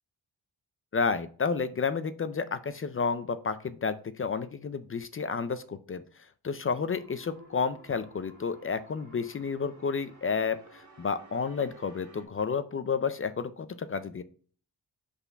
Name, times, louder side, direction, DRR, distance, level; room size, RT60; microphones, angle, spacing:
voice 1, 0.9-6.0 6.4-14.2, left 5 dB, 35° left, 13 dB, 0.4 m, -31 dB
sound 1, 6.8-12.2, right 2 dB, 45° right, 1.8 m, -55 dB
5.6 x 4.1 x 5.7 m, 0.42 s
wide cardioid pair, 180°, 41 cm